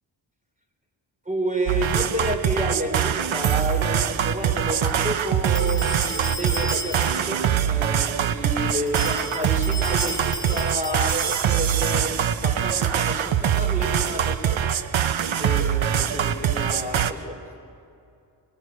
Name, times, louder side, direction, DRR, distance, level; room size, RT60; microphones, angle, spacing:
voice 1, 1.3-14.8 15.4-17.4, right 1 dB, 15° right, 2 dB, 4.2 m, -30 dB
sound 1, 1.7-17.1, right 9 dB, 75° right, 1.0 m, -23 dB
sound 2, 5.4-7.4 8.9-11.7, left 1 dB, 10° left, 1.8 m, -34 dB
23.5 x 20.5 x 7.8 m, 2.5 s
wide cardioid pair, 100°, 47 cm